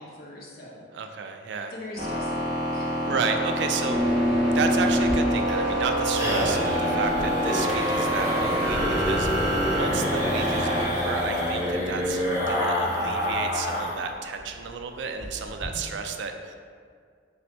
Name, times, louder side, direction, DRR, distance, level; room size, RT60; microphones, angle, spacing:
voice 1, 0.0-1.1 1.7-3.2 3.8-4.0 15.6-15.9, left 1 dB, 55° left, -3 dB, 0.8 m, -42 dB
voice 2, 0.9-1.7 3.1-4.0 4.5-16.6, right 5 dB, 65° right, 6 dB, 0.3 m, -32 dB
sound 1, 2.0-10.8, equal, 40° right, 1.1 m, -26 dB
Drawer open or close, 4.5-4.7 5.3-10.5 11.2-11.3, equal, ahead, 0.6 m, -42 dB
sound 2, 5.0-14.1 14.4-14.5 14.8-14.9 15.2-15.6, equal, 15° right, 1.2 m, -28 dB
3.1 x 2.9 x 4.1 m, 2.1 s
head